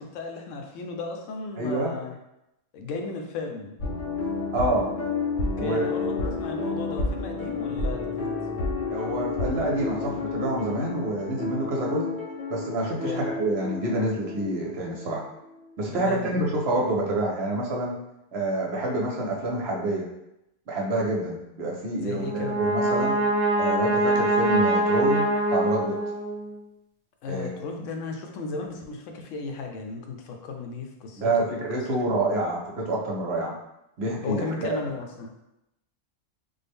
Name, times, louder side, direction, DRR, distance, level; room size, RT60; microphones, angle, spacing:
voice 1, 0.0-2.2 2.7-3.7 5.6-8.3 13.0-13.3 15.9-16.4 22.0-22.6 27.2-31.3 31.9-32.2 34.2-35.3, left 4 dB, 80° left, 3 dB, 0.9 m, -35 dB
voice 2, 1.6-1.9 4.5-4.9 5.6-6.1 8.9-12.1 12.5-15.2 15.8-17.9 18.3-20.1 20.7-23.2 23.6-25.2 25.5-26.0 27.3-27.8 31.2-33.5 34.0-34.8, right 2 dB, 60° right, -2 dB, 0.9 m, -27 dB
sound 1, 3.8-15.2 15.5-15.6, left 3 dB, 45° left, 0.8 m, -31 dB
Brass instrument, 22.1-26.5, right 1 dB, 25° right, 0.6 m, -24 dB
3.6 x 2.1 x 3.4 m, 0.87 s
omnidirectional pair, 1.3 m